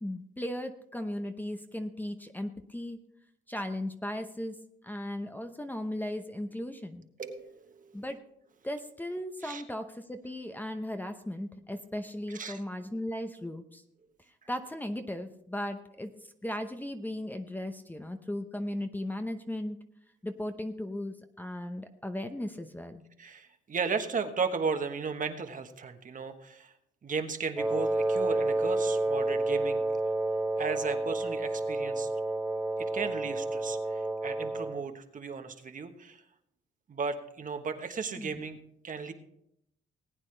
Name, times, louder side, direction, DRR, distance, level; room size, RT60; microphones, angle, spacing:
voice 1, 0.0-3.0 3.5-4.6 4.8-7.1 7.9-8.2 8.6-13.8 14.5-16.1 16.4-19.8 20.2-23.0 38.2-38.5, left 1 dB, 10° left, 7 dB, 0.9 m, -37 dB
voice 2, 7.2-8.0 9.4-9.6 12.3-12.6 23.2-26.7 27.0-29.8 30.6-32.1 32.8-36.2 36.9-38.6 38.8-39.1, right 5 dB, 40° right, 6 dB, 1.3 m, -35 dB
Wind instrument woodwind instrument, 27.6-34.9, right 2 dB, 10° right, 0.5 m, -30 dB
19.0 x 9.0 x 3.3 m, 0.76 s
cardioid pair, 90°, 20 cm